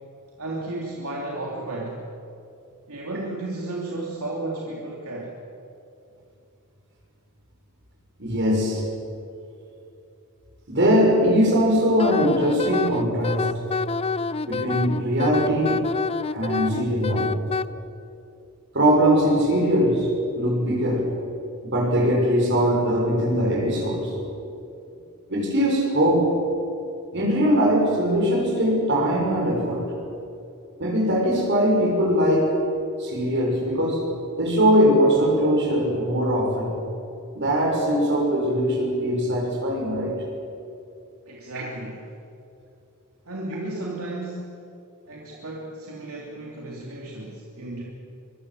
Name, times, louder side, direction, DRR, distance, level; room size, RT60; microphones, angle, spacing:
voice 1, 0.4-2.0 2.9-5.3 41.3-42.0 43.2-44.6 45.1-47.8, right 2 dB, 75° right, -2 dB, 3.2 m, -33 dB
voice 2, 8.2-8.8 10.7-13.6 14.5-15.8 16.3-17.3 18.7-21.1 21.6-24.5 25.3-26.3 27.1-29.9 30.8-32.6 33.0-34.1 34.4-36.9 37.3-40.2 41.5-41.7, equal, 55° right, 0 dB, 6.5 m, -21 dB
Wind instrument woodwind instrument, 12.0-17.7, left 4 dB, 25° left, 0.5 m, -27 dB
24.0 x 24.0 x 7.8 m, 2.7 s
head